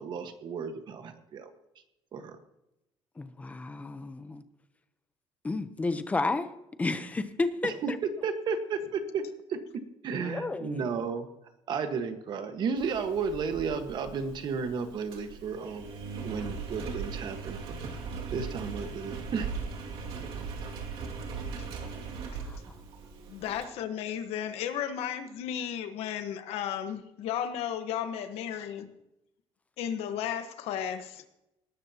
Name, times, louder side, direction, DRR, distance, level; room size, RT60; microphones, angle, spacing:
voice 1, 0.0-1.5 2.1-2.4 7.6-9.2 9.5-9.6 10.0-11.3 11.7-15.9 16.2-17.8 18.3-19.5, right 5 dB, 50° right, 7 dB, 1.5 m, -33 dB
voice 2, 3.2-4.4 5.4-6.5 6.8-8.0 10.1-10.9 22.4-22.6, left 3 dB, 15° left, 11 dB, 0.8 m, -32 dB
Engine, 12.8-23.6, right 5 dB, 65° right, 2.4 m, -39 dB
voice 3, 23.3-28.9 29.8-31.3, left 9 dB, 85° left, 9 dB, 1.4 m, -34 dB
19.5 x 12.5 x 3.0 m, 0.89 s
cardioid pair, 165°, 10 cm